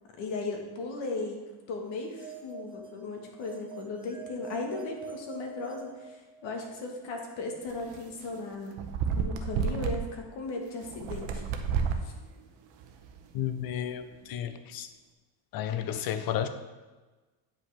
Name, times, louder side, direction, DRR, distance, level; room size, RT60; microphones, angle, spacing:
voice 1, 0.2-1.4 1.7-8.8 9.1-11.4 12.0-12.1, left 3 dB, 70° left, 1 dB, 1.6 m, -36 dB
sound 1, 1.9-6.8, right 6 dB, 10° right, 0.4 m, -46 dB
sound 2, 7.8-8.0 8.8-10.0 10.8-12.1 12.8-13.2, right 6 dB, 65° right, 0.8 m, -30 dB
voice 2, 13.3-14.9 15.5-16.5, left 10 dB, 50° left, 10 dB, 0.6 m, -32 dB
9.4 x 5.1 x 3.3 m, 1.2 s
cardioid pair, 165°, 47 cm